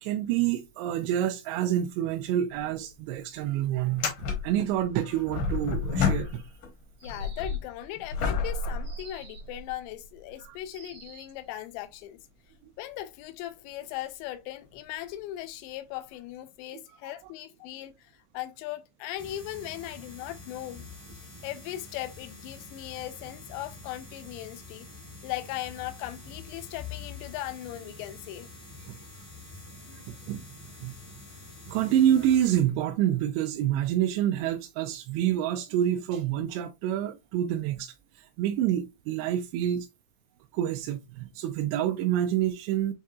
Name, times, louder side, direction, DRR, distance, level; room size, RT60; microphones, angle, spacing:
voice 1, 0.0-4.1 4.4-6.4 16.7-17.0 30.3-30.4 30.8-31.0 31.7-37.9 38.4-39.9 40.5-42.9, right 11 dB, 85° right, 2.5 m, -27 dB
sound 1, 2.5-2.6 2.9-3.0 3.8-6.7 7.0-9.7 10.4-10.5 14.6-14.8 16.1-16.2, left 5 dB, 65° left, 2.0 m, -31 dB
voice 2, 7.0-12.2 12.8-20.8 21.4-24.9 25.2-28.5, left 14 dB, 85° left, 2.8 m, -38 dB
sound 2, 7.0-7.8 8.8-9.6 10.7-11.4, right 3 dB, 45° right, 1.0 m, -50 dB
sound 3, 19.2-32.6, left 3 dB, 35° left, 0.8 m, -46 dB
7.1 x 2.7 x 2.3 m
omnidirectional pair, 5.2 m